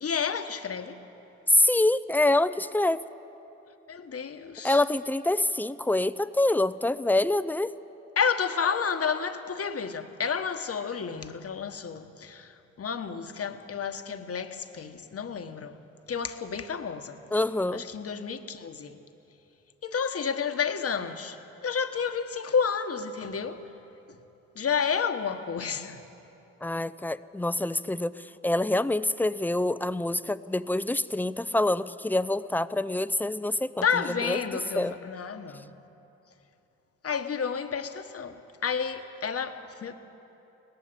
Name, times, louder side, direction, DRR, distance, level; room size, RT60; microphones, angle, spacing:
voice 1, 0.0-1.0 3.9-4.8 8.2-15.8 16.1-17.2 17.7-19.0 19.8-23.6 24.5-26.0 33.8-35.7 37.0-39.9, left 6 dB, 55° left, 1.3 m, -31 dB
voice 2, 1.5-3.0 4.6-7.7 17.3-17.8 26.6-28.1 28.4-33.8 34.2-34.4 34.8-35.0, left 2 dB, 5° left, 0.6 m, -26 dB
18.5 x 15.0 x 9.8 m
supercardioid pair, 55°, 29 cm